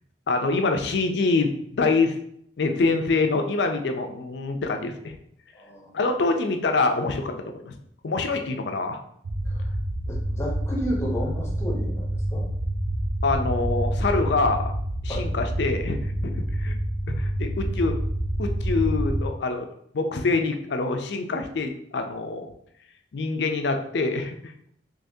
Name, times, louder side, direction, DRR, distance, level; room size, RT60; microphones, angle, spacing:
voice 1, 0.3-2.2 2.6-5.1 5.9-7.7 8.0-9.0 13.2-14.7 15.0-16.8 17.1-18.0 18.4-19.7 19.9-22.5 23.1-24.5, left 3 dB, 65° left, 5 dB, 0.4 m, -25 dB
voice 2, 5.5-5.9 9.4-9.7 10.1-12.5 15.1-15.3, equal, 15° left, -3 dB, 0.7 m, -32 dB
sound 1, 9.2-19.2, right 1 dB, 70° right, 0.6 m, -27 dB
3.5 x 3.0 x 2.7 m, 0.70 s
head